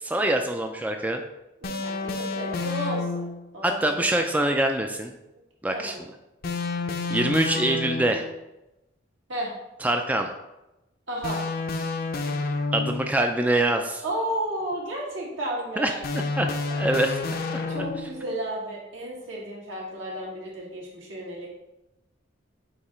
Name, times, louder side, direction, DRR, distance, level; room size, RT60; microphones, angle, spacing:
voice 1, 0.0-1.2 3.6-5.1 5.6-5.9 7.1-8.3 9.8-10.3 12.7-14.0 15.8-17.2, right 1 dB, 10° right, 4 dB, 0.3 m, -24 dB
sound 1, 1.6-3.5 6.4-8.3 11.2-13.2 16.0-18.2, left 3 dB, 50° left, 0.5 m, -29 dB
voice 2, 1.6-3.3 3.5-4.1 5.7-6.0 9.3-9.5 11.1-11.4 14.0-16.0 17.7-21.5, right 1 dB, 75° right, -4 dB, 1.9 m, -33 dB
8.2 x 2.9 x 4.3 m, 0.96 s
head